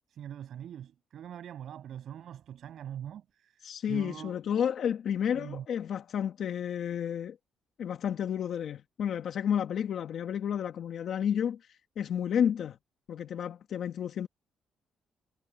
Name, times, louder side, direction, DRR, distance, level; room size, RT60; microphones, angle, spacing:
voice 1, 0.1-3.6 3.9-4.3 5.3-5.7, right 10 dB, 70° right, 7.1 m, -42 dB
voice 2, 3.6-7.4 7.8-12.8 13.1-14.3, left 8 dB, 65° left, 1.4 m, -31 dB
cardioid pair, 90°, 0 cm